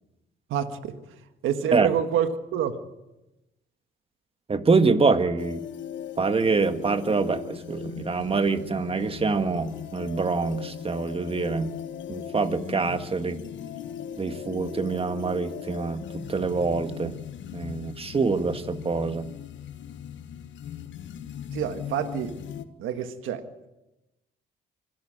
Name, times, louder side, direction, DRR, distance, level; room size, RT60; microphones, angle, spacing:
voice 1, 0.5-1.0 1.4-2.8 21.5-22.3 22.8-23.7, right 9 dB, 85° right, 9 dB, 1.6 m, -28 dB
voice 2, 4.5-5.6 6.2-11.7 12.1-13.4 14.2-17.1 17.5-19.3, right 4 dB, 30° right, 9 dB, 1.6 m, -25 dB
sound 1, 5.4-22.7, left 9 dB, 70° left, 1.3 m, -39 dB
25.5 x 11.5 x 8.9 m, 0.98 s
cardioid pair, 90°, 20 cm